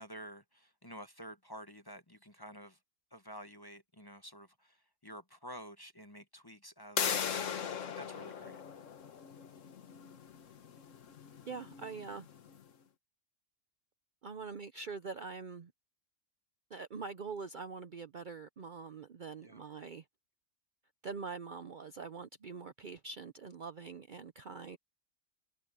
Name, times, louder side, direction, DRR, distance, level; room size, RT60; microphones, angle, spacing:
voice 1, 0.0-2.8 3.1-8.6 19.4-19.6, equal, 20° left, 1.0 m, -50 dB
sound 1, 7.0-12.6, left 7 dB, 70° left, 1.5 m, -39 dB
voice 2, 11.5-12.3 14.2-15.7 16.7-20.0 21.0-24.8, right 5 dB, 50° right, 0.7 m, -44 dB
omnidirectional pair, 1.4 m